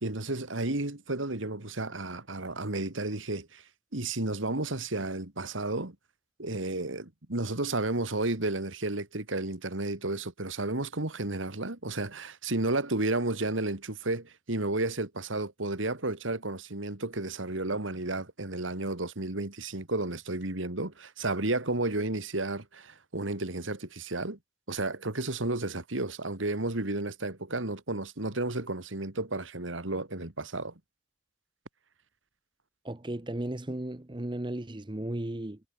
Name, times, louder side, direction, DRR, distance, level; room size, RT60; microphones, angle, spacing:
voice 1, 0.0-3.6 3.9-6.0 6.4-24.4 24.7-30.7, right 2 dB, 80° right, 2.6 m, -32 dB
voice 2, 32.8-35.6, right 1 dB, 25° right, 0.8 m, -35 dB
head